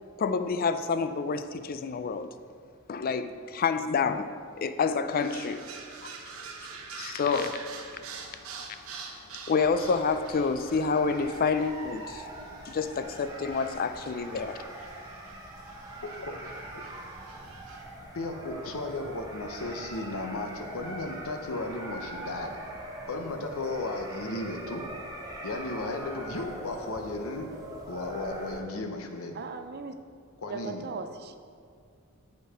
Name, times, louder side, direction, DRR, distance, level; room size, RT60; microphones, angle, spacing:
voice 1, 0.2-2.3 2.9-4.3 4.6-5.6 6.0-6.1 6.9-7.6 9.5-12.3 12.6-14.7, left 5 dB, 45° left, 10 dB, 0.4 m, -28 dB
sound 1, 5.1-17.8, right 5 dB, 75° right, 0.9 m, -46 dB
sound 2, 9.5-28.6, right 1 dB, 20° right, 1.0 m, -42 dB
voice 2, 16.0-16.3 16.7-16.8 18.1-22.6 23.1-24.9 25.4-27.5 27.9-29.4 30.4-30.8, left 2 dB, 80° left, 4 dB, 0.8 m, -35 dB
voice 3, 29.3-29.9 30.5-31.4, right 4 dB, 50° right, 8 dB, 0.5 m, -38 dB
8.0 x 5.3 x 4.9 m, 2.2 s
head